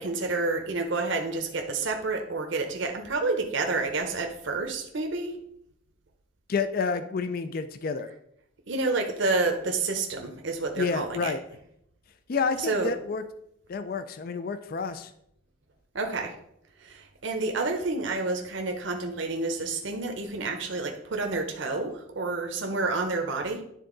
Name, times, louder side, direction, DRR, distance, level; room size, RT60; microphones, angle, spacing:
voice 1, 0.0-5.4 8.7-11.3 12.6-12.9 15.9-16.4 16.8-23.6, right 3 dB, 65° right, 3 dB, 0.8 m, -29 dB
voice 2, 6.5-8.1 10.8-11.4 12.3-13.2 13.7-15.1, left 5 dB, 45° left, 10 dB, 0.4 m, -29 dB
10.0 x 3.8 x 3.8 m, 0.75 s
head